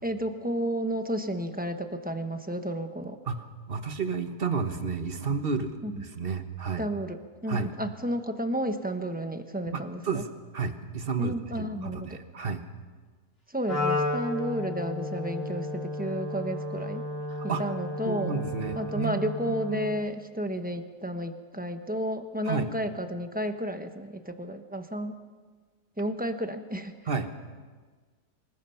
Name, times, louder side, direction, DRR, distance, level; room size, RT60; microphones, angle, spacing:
voice 1, 0.0-3.2 5.8-6.0 6.8-10.2 11.2-12.2 13.5-17.0 17.6-18.4 18.7-25.2 26.0-26.9, equal, 5° right, 7 dB, 0.8 m, -32 dB
voice 2, 3.2-6.8 7.5-7.7 9.7-12.6 17.3-17.7 18.0-19.9 22.4-22.7 27.1-27.3, right 5 dB, 35° right, 8 dB, 1.3 m, -32 dB
Wind instrument woodwind instrument, 13.6-20.0, left 2 dB, 35° left, 4.0 m, -33 dB
25.0 x 20.0 x 5.8 m, 1.5 s
omnidirectional pair, 1.8 m